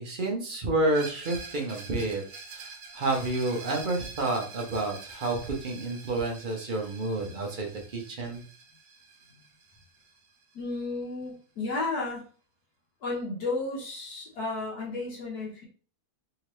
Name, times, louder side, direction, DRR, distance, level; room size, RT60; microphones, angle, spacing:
voice 1, 0.0-2.2 2.5-8.4, right 2 dB, 50° right, 1 dB, 0.6 m, -30 dB
Screech, 0.9-10.5, right 4 dB, 70° right, 1.3 m, -46 dB
voice 2, 10.5-12.3 13.0-15.6, left 3 dB, 70° left, -3 dB, 1.4 m, -33 dB
3.5 x 2.9 x 3.0 m, 0.40 s
omnidirectional pair, 1.8 m